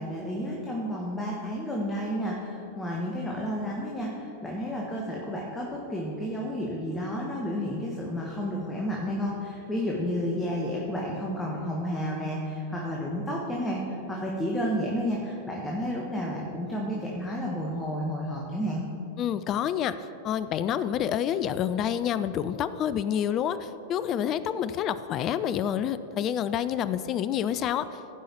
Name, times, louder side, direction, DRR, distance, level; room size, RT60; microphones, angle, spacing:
voice 1, 0.0-18.9, equal, 10° left, -3 dB, 1.3 m, -31 dB
voice 2, 19.2-20.0 20.2-27.9, left 9 dB, 35° left, 14 dB, 0.4 m, -28 dB
16.0 x 5.5 x 4.4 m, 2.8 s
figure-of-eight pair, 95°, 0 cm